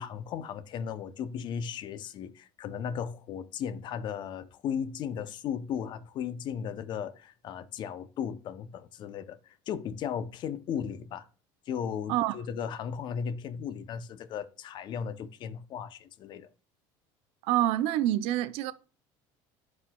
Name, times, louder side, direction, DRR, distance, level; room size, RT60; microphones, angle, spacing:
voice 1, 0.0-11.3 11.7-16.5, left 8 dB, 50° left, 0.6 m, -36 dB
voice 2, 17.4-18.7, right 13 dB, 70° right, 0.5 m, -26 dB
11.5 x 4.4 x 2.2 m
cardioid pair, 130°, 10 cm